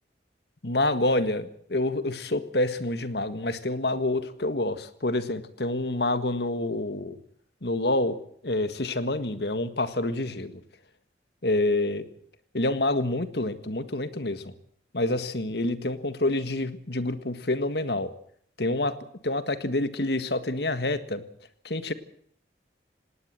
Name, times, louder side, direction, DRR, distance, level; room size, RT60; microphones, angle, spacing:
voice 1, 0.6-7.2 7.6-8.2 8.4-10.6 11.4-12.1 12.5-14.5 14.9-18.1 18.6-19.0 19.2-21.2 21.7-21.9, left 2 dB, 65° left, 11 dB, 1.7 m, -27 dB
18.5 x 18.5 x 7.7 m, 0.63 s
head